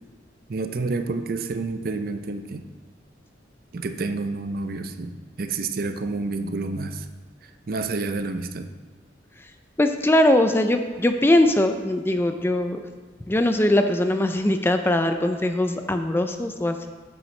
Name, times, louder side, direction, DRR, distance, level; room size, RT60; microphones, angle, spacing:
voice 1, 0.5-2.6 3.7-7.1 7.7-8.7, right 3 dB, 50° right, 8 dB, 0.5 m, -29 dB
voice 2, 9.8-12.8 13.3-16.9, left 1 dB, 10° left, 7 dB, 0.3 m, -21 dB
9.0 x 7.7 x 3.2 m, 1.4 s
head